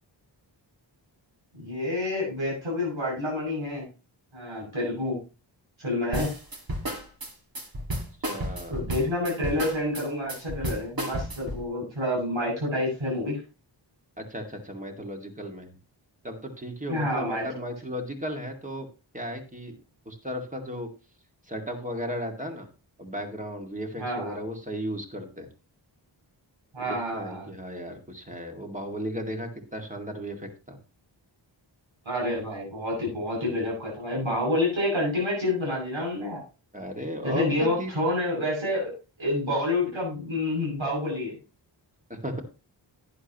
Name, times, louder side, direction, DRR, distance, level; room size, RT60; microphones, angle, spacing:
voice 1, 1.5-3.9 4.3-5.2 5.8-6.3 8.7-13.4 16.9-17.4 24.0-24.4 26.7-27.4 32.1-36.4 37.2-38.9 39.2-41.4, left 1 dB, 80° right, -3 dB, 7.4 m, -28 dB
sound 1, 6.1-11.6, right 1 dB, 50° right, 2.1 m, -32 dB
voice 2, 8.3-8.8 14.2-15.8 16.2-18.9 19.1-19.7 20.1-20.9 21.5-22.7 23.0-25.5 26.8-30.8 36.7-37.9 42.1-42.4, equal, 15° right, 4 dB, 2.1 m, -35 dB
11.0 x 10.5 x 3.0 m, 0.32 s
wide cardioid pair, 85°, 46 cm